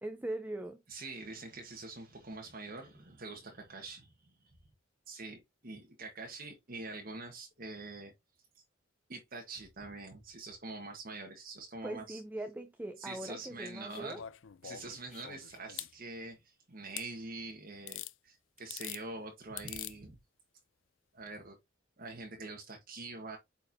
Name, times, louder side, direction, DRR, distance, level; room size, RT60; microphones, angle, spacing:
voice 1, 0.0-0.8 11.8-14.2, right 1 dB, 10° right, 0.7 m, -41 dB
voice 2, 0.9-4.5 5.1-8.1 8.5-8.6 9.1-12.2 13.0-14.2 14.6-20.2 21.1-21.6 22.0-23.4, right 3 dB, 50° right, 1.5 m, -45 dB
sound 1, 13.9-15.9 17.0-17.1 17.9-18.1 18.6-19.0 19.6-19.9 21.2-21.3, left 13 dB, 85° left, 0.5 m, -44 dB
8.9 x 4.5 x 2.8 m
head